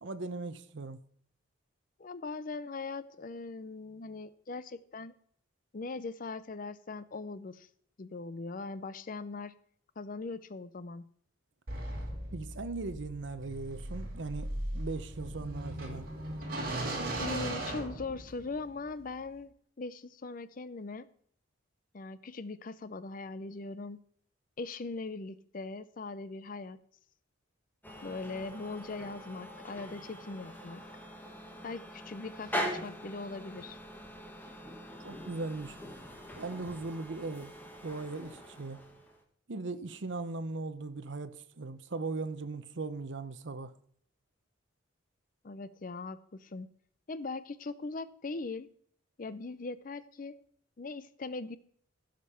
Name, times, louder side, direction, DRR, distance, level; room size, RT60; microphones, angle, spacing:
voice 1, 0.0-1.0 12.3-16.1 35.0-35.8 36.4-37.5 37.8-38.8 39.5-43.7, right 3 dB, 65° right, 0.8 m, -38 dB
voice 2, 2.0-5.1 5.7-7.7 8.0-9.6 10.0-11.0 17.2-21.1 21.9-24.0 24.6-26.8 28.0-30.8 31.6-33.8 45.4-46.7 47.1-48.7 49.2-50.4 50.8-51.6, left 3 dB, 45° left, 0.5 m, -40 dB
sound 1, 11.7-18.6, right 1 dB, 50° right, 2.5 m, -38 dB
sound 2, 27.8-39.2, equal, 10° left, 1.4 m, -43 dB
15.5 x 5.2 x 5.6 m
head